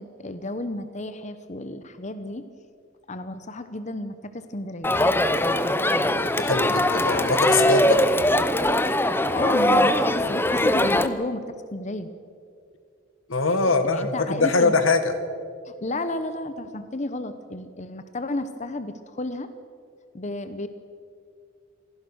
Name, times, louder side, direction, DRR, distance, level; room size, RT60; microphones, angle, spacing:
voice 1, 0.0-2.5 3.1-5.0 9.3-12.1 13.6-14.8 15.6-19.5 20.1-20.7, left 2 dB, 35° left, 11 dB, 0.9 m, -32 dB
Crowd, 4.8-11.1, left 1 dB, 10° left, 0.8 m, -21 dB
voice 2, 6.0-8.0 13.3-15.1, left 3 dB, 90° left, 9 dB, 1.9 m, -23 dB
26.5 x 18.0 x 6.3 m, 2.3 s
head